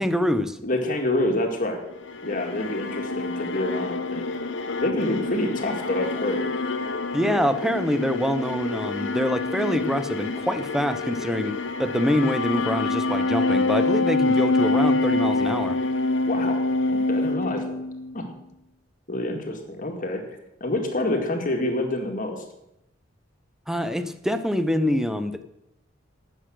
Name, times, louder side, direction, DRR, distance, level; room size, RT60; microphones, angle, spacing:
voice 1, 0.0-0.6 7.1-15.8 23.7-25.4, equal, 5° right, 11 dB, 0.7 m, -25 dB
voice 2, 0.6-1.8 2.2-4.3 4.8-6.5 16.3-17.8 18.1-18.3 19.1-20.2 20.6-22.4, left 1 dB, 45° left, 3 dB, 2.0 m, -27 dB
sound 1, 1.9-18.3, left 2 dB, 70° left, 0.8 m, -26 dB
12.5 x 8.1 x 6.3 m, 0.84 s
head